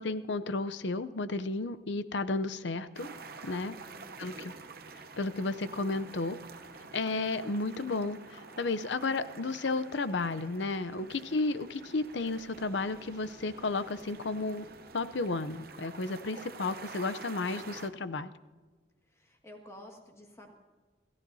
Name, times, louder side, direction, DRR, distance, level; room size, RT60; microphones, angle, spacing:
voice 1, 0.0-3.1 3.4-3.7 4.2-4.5 5.2-6.4 6.9-14.7 14.9-18.3, left 3 dB, 70° left, 14 dB, 0.6 m, -33 dB
sound 1, 2.9-17.9, right 4 dB, 50° right, 0.8 m, -48 dB
voice 2, 3.4-4.7 11.0-11.5 19.1-20.5, left 1 dB, 15° left, 1 dB, 1.9 m, -53 dB
27.0 x 15.0 x 2.7 m, 1.3 s
head